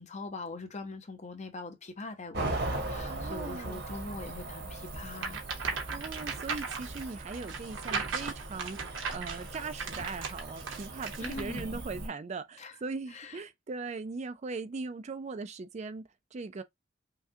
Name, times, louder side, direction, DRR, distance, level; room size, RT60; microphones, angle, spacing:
voice 1, 0.0-5.4 11.2-11.8 12.6-12.7 13.1-13.4, left 3 dB, 35° left, 0.8 m, -42 dB
Cricket / Motor vehicle (road), 2.3-12.1, right 2 dB, 55° right, 1.1 m, -39 dB
voice 2, 3.1-3.8 5.9-16.6, right 4 dB, 35° right, 0.4 m, -39 dB
sound 1, 5.1-11.6, right 5 dB, 75° right, 1.2 m, -37 dB
5.7 x 2.3 x 2.7 m
head